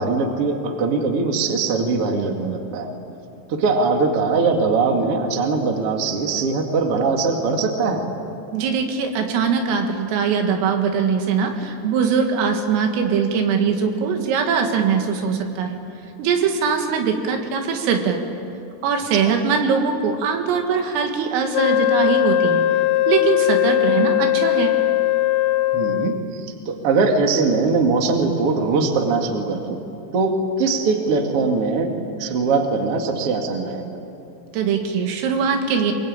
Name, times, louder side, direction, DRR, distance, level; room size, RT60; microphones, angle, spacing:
voice 1, 0.0-2.9 3.5-8.1 19.2-19.3 25.7-29.8 30.1-33.9, right 4 dB, 50° right, 3 dB, 1.8 m, -21 dB
voice 2, 8.5-15.8 16.2-18.2 18.8-22.6 23.1-24.7 34.5-35.9, right 6 dB, 85° right, 4 dB, 4.6 m, -21 dB
Wind instrument woodwind instrument, 21.5-26.3, left 14 dB, 80° left, 2.8 m, -19 dB
24.5 x 22.5 x 8.8 m, 2.7 s
omnidirectional pair, 5.8 m